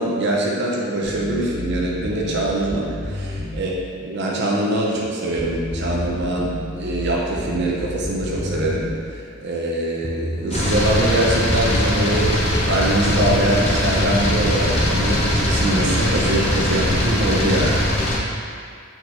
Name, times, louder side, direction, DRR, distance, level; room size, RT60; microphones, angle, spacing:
voice 1, 0.0-17.9, right 1 dB, 55° right, -3 dB, 0.7 m, -23 dB
sound 1, 1.0-3.6 5.4-9.0 10.0-11.7, left 1 dB, 20° right, 0.5 m, -30 dB
sound 2, 10.5-18.2, left 1 dB, 30° left, 0.6 m, -20 dB
4.4 x 4.2 x 2.6 m, 2.3 s
head